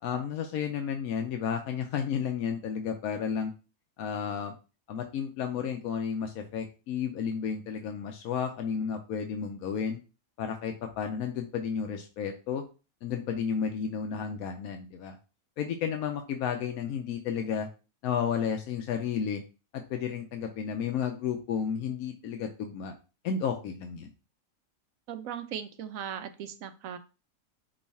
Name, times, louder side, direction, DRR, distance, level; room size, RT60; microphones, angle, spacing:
voice 1, 0.0-3.5 4.0-4.5 4.9-10.0 10.4-12.6 13.0-15.1 15.6-17.7 18.0-19.4 19.7-22.9 23.2-24.1, left 7 dB, 90° left, 4 dB, 1.1 m, -32 dB
voice 2, 25.1-27.0, right 9 dB, 75° right, 8 dB, 1.1 m, -38 dB
5.4 x 2.4 x 4.1 m, 0.32 s
omnidirectional pair, 1.5 m